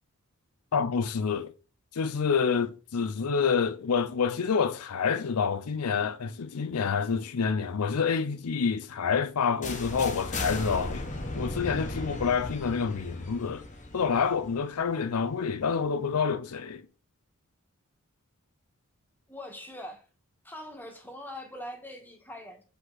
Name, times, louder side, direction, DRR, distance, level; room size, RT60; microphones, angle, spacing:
voice 1, 0.7-1.5 1.9-11.1 11.3-13.7 13.9-16.9, left 6 dB, 90° left, 0.5 m, -28 dB
sound 1, 9.6-15.4, left 2 dB, 35° left, 1.2 m, -36 dB
voice 2, 19.3-20.0 20.4-22.6, left 1 dB, 10° left, 1.5 m, -42 dB
7.7 x 5.3 x 4.0 m
head